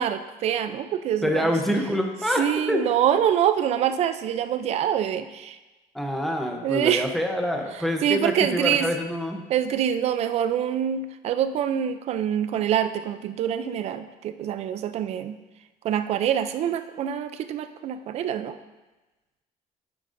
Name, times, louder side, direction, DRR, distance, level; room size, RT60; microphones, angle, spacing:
voice 1, 0.0-1.5 2.4-5.6 6.6-7.1 7.7-8.9 9.5-15.3 15.8-18.6, right 9 dB, 45° right, 10 dB, 0.4 m, -25 dB
voice 2, 1.2-2.9 5.9-9.4, equal, ahead, 2 dB, 0.7 m, -26 dB
9.1 x 8.7 x 2.6 m, 1.1 s
cardioid pair, 165°, 15 cm